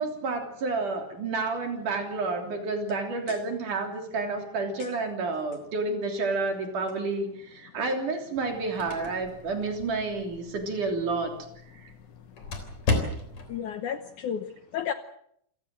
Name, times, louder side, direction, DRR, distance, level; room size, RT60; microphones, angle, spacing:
voice 1, 0.0-11.4 11.7-11.9, right 3 dB, 55° right, 4 dB, 4.7 m, -30 dB
sound 1, 8.4-13.6, left 3 dB, 45° left, 4.7 m, -35 dB
voice 2, 11.7-14.9, left 8 dB, 65° left, 9 dB, 2.1 m, -36 dB
28.0 x 17.0 x 7.8 m, 0.71 s
omnidirectional pair, 4.4 m